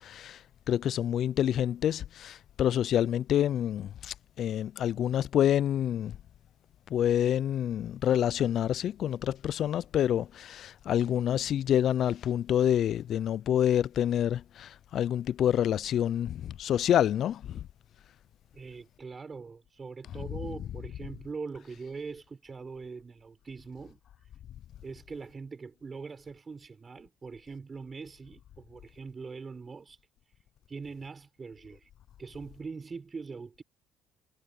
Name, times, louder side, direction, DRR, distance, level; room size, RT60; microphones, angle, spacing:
voice 1, 0.0-6.2 6.9-17.7 20.1-20.3, left 10 dB, 60° left, 0.3 m, -27 dB
voice 2, 18.5-24.0 24.8-30.0 30.7-31.9 32.2-33.6, right 4 dB, 30° right, 6.3 m, -42 dB
supercardioid pair, 85°, 0 cm